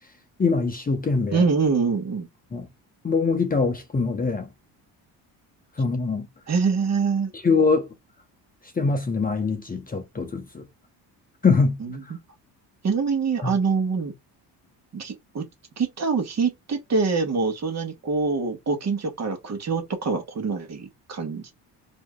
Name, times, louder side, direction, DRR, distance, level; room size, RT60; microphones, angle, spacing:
voice 1, 0.4-1.4 2.5-2.7 3.0-4.5 5.8-6.3 7.4-7.9 8.8-10.6 11.4-11.8 13.4-13.5, left 4 dB, 20° left, 0.7 m, -23 dB
voice 2, 1.3-2.3 6.5-7.3 11.8-12.2 12.8-14.1 14.9-15.4 15.8-21.5, right 4 dB, 40° right, 1.2 m, -25 dB
4.7 x 2.8 x 2.3 m
cardioid pair, 105°, 41 cm